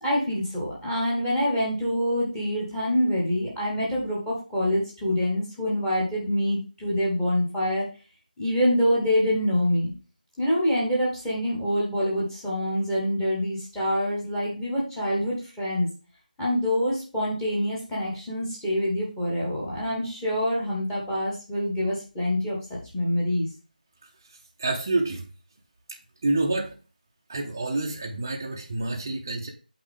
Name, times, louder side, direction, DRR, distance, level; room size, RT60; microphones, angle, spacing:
voice 1, 0.0-7.9 8.4-9.9 10.4-15.9 16.4-23.5, equal, ahead, -5 dB, 1.0 m, -26 dB
voice 2, 24.6-25.3 26.2-26.8 27.3-29.5, right 2 dB, 20° right, 0 dB, 0.6 m, -27 dB
8.0 x 4.1 x 3.4 m, 0.34 s
figure-of-eight pair, 165°, 5 cm